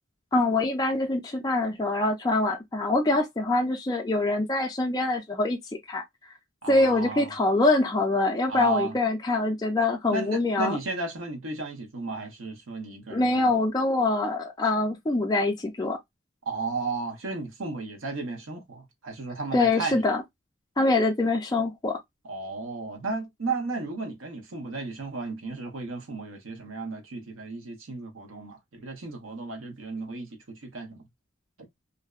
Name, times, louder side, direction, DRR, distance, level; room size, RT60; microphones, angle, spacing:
voice 1, 0.3-5.6 5.9-6.0 6.7-10.8 13.1-16.0 19.5-20.2 20.8-22.0, left 2 dB, 20° left, 0.3 m, -24 dB
voice 2, 6.6-7.3 8.5-9.0 10.1-13.5 16.5-20.0 22.2-31.0, right 3 dB, 80° right, 0.7 m, -34 dB
2.6 x 2.1 x 2.3 m
head